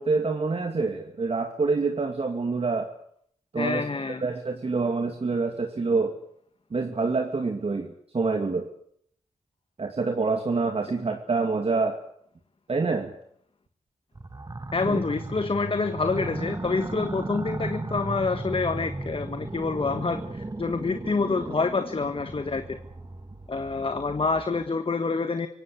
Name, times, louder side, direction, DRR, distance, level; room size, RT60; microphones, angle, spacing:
voice 1, 0.0-2.9 3.5-6.1 6.7-8.7 9.8-12.0 12.7-13.1 14.8-15.0, right 4 dB, 50° right, 4 dB, 2.4 m, -26 dB
voice 2, 3.5-4.2 14.7-22.8 23.5-25.5, left 4 dB, 45° left, 9 dB, 1.5 m, -27 dB
sound 1, 14.1-24.7, right 2 dB, 30° right, 1.7 m, -36 dB
26.5 x 17.0 x 8.2 m, 0.66 s
cardioid pair, 65°, 13 cm